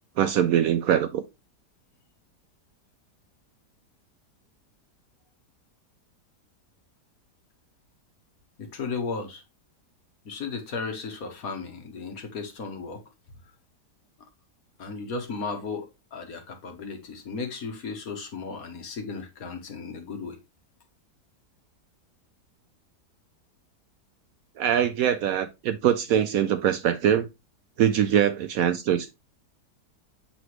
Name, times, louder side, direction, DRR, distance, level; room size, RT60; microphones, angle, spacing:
voice 1, 0.2-1.2 24.6-27.3 27.8-29.1, right 9 dB, 70° right, 0.9 m, -23 dB
voice 2, 8.6-9.4 10.2-13.0 14.8-20.4, left 4 dB, 60° left, 1.6 m, -35 dB
7.6 x 4.0 x 3.1 m
omnidirectional pair, 1.8 m